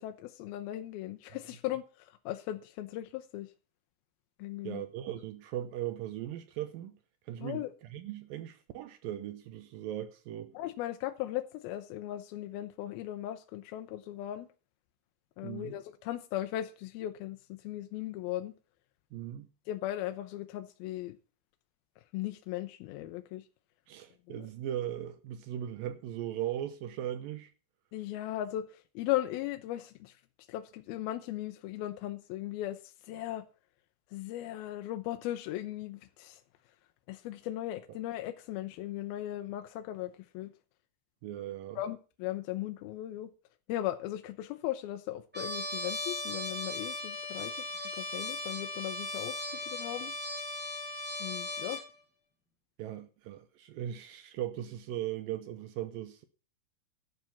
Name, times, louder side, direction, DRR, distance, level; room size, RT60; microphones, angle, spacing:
voice 1, 0.0-3.5 4.4-4.8 7.4-7.7 10.5-14.5 15.4-18.5 19.7-21.2 22.1-23.5 24.3-24.5 27.9-30.2 30.5-33.5 34.1-36.4 37.1-40.5 41.8-43.3 43.7-50.1 51.2-51.8, left 14 dB, 80° left, 2.6 m, -37 dB
voice 2, 4.6-7.0 7.3-7.6 7.9-10.5 15.4-15.8 19.1-19.5 23.9-27.5 41.2-41.8 52.8-56.3, right 11 dB, 75° right, 2.5 m, -38 dB
Trumpet, 45.3-51.9, left 2 dB, 5° right, 1.5 m, -37 dB
12.0 x 7.6 x 7.0 m
omnidirectional pair, 4.3 m